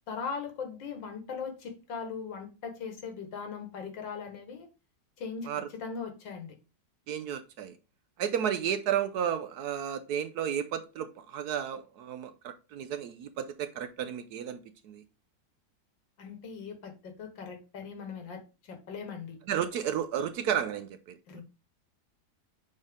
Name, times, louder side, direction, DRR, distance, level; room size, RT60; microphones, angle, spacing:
voice 1, 0.1-4.7 5.2-6.6 16.2-19.4 21.3-21.4, left 5 dB, 85° left, 5 dB, 2.1 m, -39 dB
voice 2, 7.1-7.7 8.2-15.0 19.5-21.4, right 9 dB, 70° right, 10 dB, 1.0 m, -33 dB
6.3 x 4.3 x 3.6 m, 0.30 s
omnidirectional pair, 2.0 m